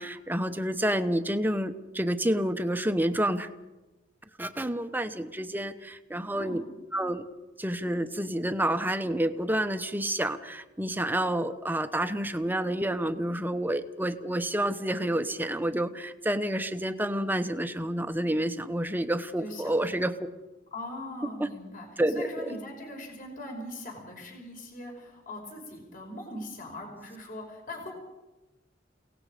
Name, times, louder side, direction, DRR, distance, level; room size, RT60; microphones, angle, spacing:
voice 1, 0.0-3.5 4.4-6.6 6.9-7.3 7.6-20.1 21.4-21.5 22.0-22.5, right 1 dB, 10° right, 9 dB, 1.0 m, -29 dB
voice 2, 19.4-20.1 20.7-21.9 22.1-27.9, left 1 dB, 45° left, 1 dB, 5.0 m, -41 dB
29.5 x 18.0 x 5.1 m, 1.1 s
head